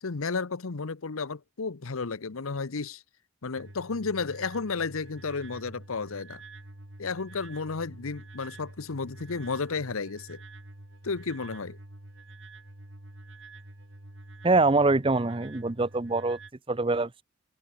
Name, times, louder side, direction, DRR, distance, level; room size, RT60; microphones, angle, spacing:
voice 1, 0.0-3.0 3.4-6.4 7.0-10.4 11.0-11.8, left 4 dB, 85° left, 0.9 m, -32 dB
sound 1, 3.6-16.5, right 2 dB, 60° right, 3.4 m, -47 dB
voice 2, 14.4-16.4 16.7-17.2, right 3 dB, 25° right, 0.6 m, -24 dB
open air
head